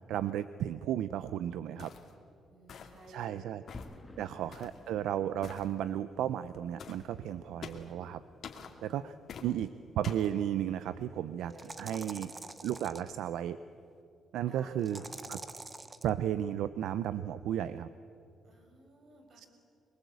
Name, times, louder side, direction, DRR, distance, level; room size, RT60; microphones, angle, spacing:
voice 1, 0.1-1.9 3.1-3.6 4.2-8.2 8.8-9.1 9.4-9.7 10.0-11.5 11.8-12.3 12.6-13.6 14.3-15.0 15.3-15.4 16.0-17.9 19.4-19.5, right 11 dB, 85° right, 14 dB, 0.6 m, -34 dB
sound 1, 1.8-2.1 2.7-3.1 3.7-4.0 4.5-4.8 5.4-5.7 6.8-7.0 7.6-7.9 8.4-8.7 9.3-9.5 10.0-10.3, left 6 dB, 60° left, 2.5 m, -46 dB
voice 2, 2.5-3.8 4.2-5.1 8.8-9.7 11.4-12.5 14.4-15.1 18.4-19.5, equal, 60° right, 3 dB, 5.6 m, -56 dB
sound 2, 3.7-14.0, left 2 dB, 20° left, 1.5 m, -57 dB
sound 3, 10.2-10.3 11.5-13.1 14.8-16.1, right 3 dB, 25° right, 1.1 m, -45 dB
24.5 x 22.0 x 8.2 m, 2.6 s
cardioid pair, 90°, 0 cm